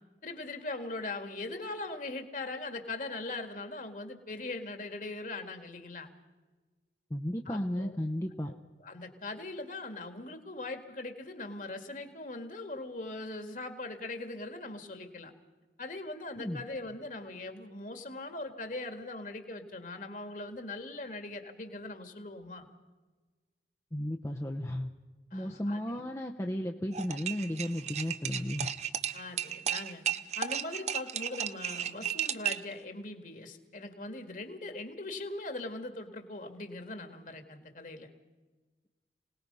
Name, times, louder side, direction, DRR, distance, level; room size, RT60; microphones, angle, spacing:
voice 1, 0.2-6.1 7.5-8.0 8.5-8.6 8.8-15.3 15.8-22.7 25.3-26.0 29.1-30.0 30.4-38.1, left 2 dB, 50° left, 7 dB, 2.0 m, -40 dB
voice 2, 7.1-8.5 16.4-16.6 23.9-24.9 25.3-28.7, equal, 15° left, 2 dB, 0.8 m, -34 dB
sound 1, 26.9-32.7, right 9 dB, 40° right, 0.7 m, -34 dB
26.0 x 19.0 x 5.5 m, 1.3 s
head